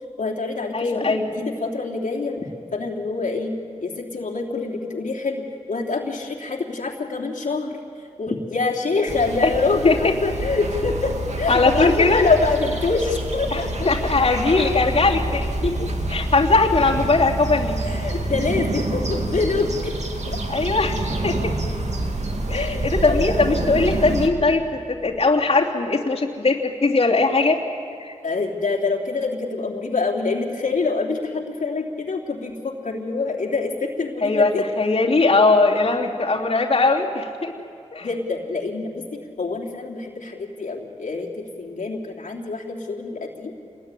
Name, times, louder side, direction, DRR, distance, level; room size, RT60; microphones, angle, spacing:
voice 1, 0.2-2.4 2.7-7.8 8.2-13.9 17.8-19.9 20.3-20.4 22.5-23.5 28.2-34.6 38.0-39.0 39.4-43.5, left 3 dB, 85° left, -2 dB, 3.2 m, -25 dB
voice 2, 0.7-1.3 9.8-10.0 11.5-12.2 13.5-13.6 13.8-15.8 16.1-17.8 20.5-21.5 22.5-27.6 28.0-28.1 34.2-37.5 37.9-38.1, left 3 dB, 50° left, -3 dB, 3.0 m, -20 dB
sound 1, 9.1-24.3, right 1 dB, 65° right, 2.8 m, -27 dB
27.5 x 21.0 x 9.9 m, 2.6 s
wide cardioid pair, 65°, 13 cm